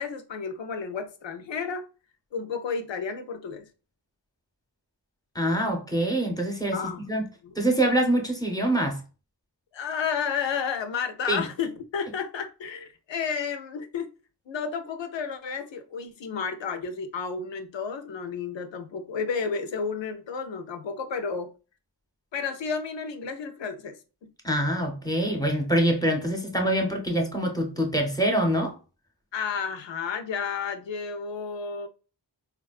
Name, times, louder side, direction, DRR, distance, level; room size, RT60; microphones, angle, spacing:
voice 1, 0.0-1.9 2.3-3.7 6.7-7.1 7.4-7.5 9.7-14.1 14.5-21.5 22.3-24.3 26.8-26.9 29.3-31.9, left 6 dB, 85° left, 0.5 m, -32 dB
voice 2, 5.3-7.3 7.6-9.0 11.3-11.4 24.4-28.7, right 1 dB, 10° left, 0.7 m, -25 dB
3.9 x 2.2 x 2.3 m
wide cardioid pair, 60°, 43 cm